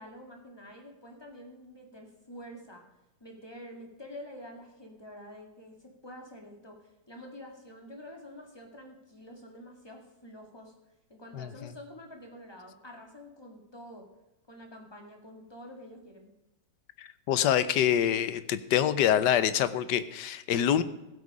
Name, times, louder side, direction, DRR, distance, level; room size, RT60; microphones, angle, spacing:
voice 1, 0.0-2.9 3.2-10.7 11.1-14.1 14.5-16.3, equal, 15° left, 2 dB, 2.0 m, -48 dB
voice 2, 17.0-20.8, left 10 dB, 75° left, 14 dB, 1.3 m, -26 dB
15.0 x 8.3 x 4.9 m, 0.99 s
omnidirectional pair, 2.0 m